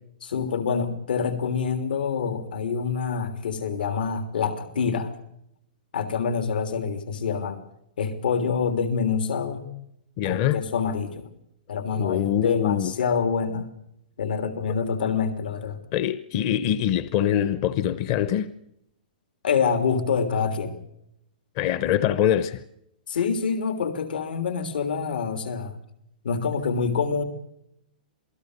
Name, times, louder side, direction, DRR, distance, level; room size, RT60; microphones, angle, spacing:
voice 1, 0.2-5.1 5.9-7.6 8.0-9.7 10.2-11.3 11.7-13.7 14.2-15.8 19.4-20.8 23.1-25.8 26.2-27.2, left 6 dB, 80° left, 3.4 m, -26 dB
voice 2, 10.2-10.6 12.0-12.9 15.9-18.5 21.6-22.6, left 10 dB, 30° left, 0.8 m, -24 dB
28.0 x 19.0 x 6.7 m
hypercardioid pair, 175°, 5 cm